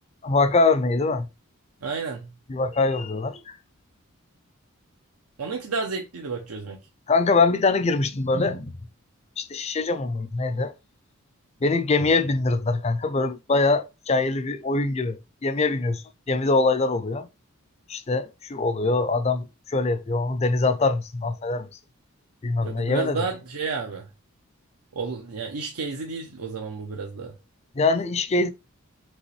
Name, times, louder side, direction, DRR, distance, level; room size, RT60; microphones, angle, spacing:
voice 1, 0.2-1.3 2.5-3.6 7.1-8.7 9.4-10.7 11.6-17.3 17.9-21.7 22.4-23.3 27.8-28.5, left 3 dB, 30° left, 0.4 m, -23 dB
voice 2, 1.8-2.3 5.4-6.8 22.6-24.1 24.9-27.4, right 4 dB, 85° right, 0.7 m, -31 dB
5.3 x 2.9 x 3.1 m
head